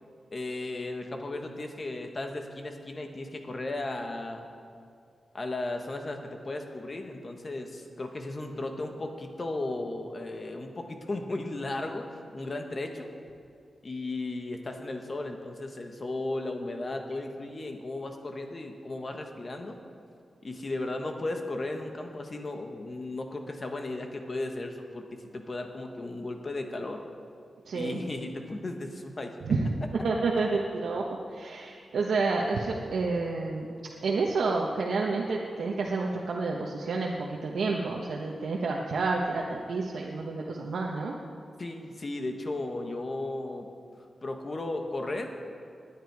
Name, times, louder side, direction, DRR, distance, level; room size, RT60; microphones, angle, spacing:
voice 1, 0.3-4.5 5.3-12.1 12.3-13.1 13.8-19.8 20.4-25.1 25.3-27.0 27.7-29.3 41.6-43.7 44.2-45.3, left 2 dB, 35° left, 4 dB, 1.3 m, -35 dB
voice 2, 27.7-28.0 29.4-29.7 30.0-31.0 31.3-33.7 34.0-41.2, right 3 dB, 90° right, -2 dB, 1.1 m, -29 dB
19.5 x 10.0 x 4.8 m, 2.4 s
wide cardioid pair, 130°, 0 cm